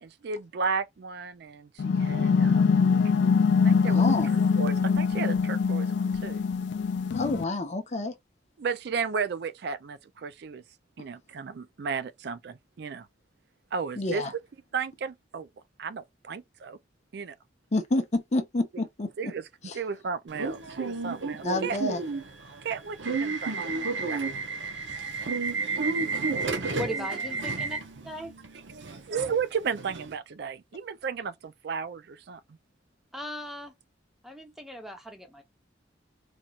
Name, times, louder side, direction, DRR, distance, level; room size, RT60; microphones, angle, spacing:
voice 1, 0.0-2.7 3.6-4.0 4.3-6.4 8.6-10.6 11.0-13.1 13.7-14.4 14.7-15.5 15.8-16.8 17.1-17.4 19.2-19.5 19.7-21.8 22.6-24.3 29.1-32.4, right 5 dB, 60° right, 0.4 m, -34 dB
sound 1, 1.8-7.4, left 5 dB, 70° left, 0.3 m, -23 dB
voice 2, 3.9-4.3 7.2-8.1 14.0-14.3 17.7-19.1 19.7-19.8 21.4-22.0, left 2 dB, 40° left, 0.7 m, -28 dB
Subway metro underground / Alarm, 20.3-30.1, right 4 dB, 85° right, 0.9 m, -32 dB
voice 3, 26.8-27.8 28.0-28.3 33.1-33.7 34.2-35.4, left 1 dB, ahead, 0.9 m, -38 dB
4.3 x 2.9 x 2.4 m
head